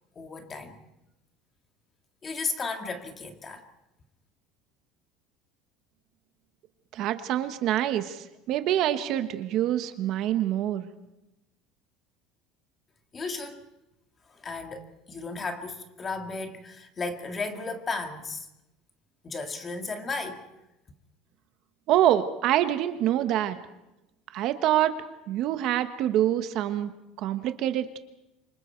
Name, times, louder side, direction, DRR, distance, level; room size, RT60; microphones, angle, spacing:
voice 1, 0.2-0.8 2.2-3.6 13.1-13.6 14.3-18.5 19.2-20.5, left 3 dB, 20° left, 1.9 m, -34 dB
voice 2, 6.9-10.9 21.9-23.6 24.3-25.0 25.3-26.9 27.2-28.0, right 12 dB, 45° right, 1.2 m, -25 dB
28.0 x 25.5 x 4.6 m
cardioid pair, 175°, 0 cm